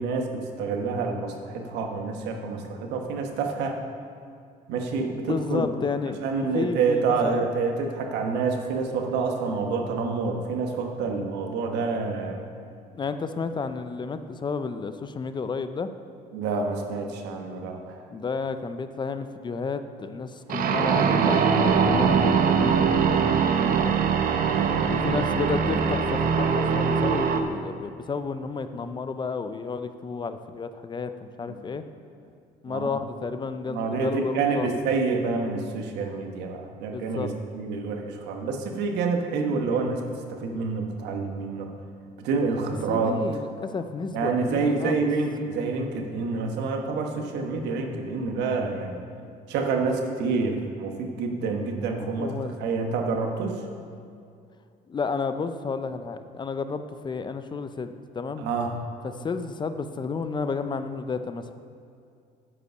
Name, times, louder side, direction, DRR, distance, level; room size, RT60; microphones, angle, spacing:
voice 1, 0.0-3.8 4.7-5.7 6.2-12.4 16.3-18.0 24.5-25.2 25.5-25.7 32.7-32.9 33.7-37.3 37.5-40.0 40.3-41.7 42.2-43.2 44.1-49.0 49.5-53.6 58.4-58.7, right 4 dB, 85° right, 3 dB, 1.2 m, -28 dB
voice 2, 5.3-6.2 6.5-7.5 12.9-15.9 18.1-24.0 24.9-31.8 32.6-34.7 36.9-37.3 42.9-45.0 52.0-52.6 54.9-58.5 59.0-61.5, left 5 dB, 25° left, 10 dB, 0.5 m, -32 dB
sound 1, 20.5-27.4, right 6 dB, 55° right, 0.8 m, -22 dB
9.7 x 5.3 x 6.7 m, 2.4 s
cardioid pair, 110°, 17 cm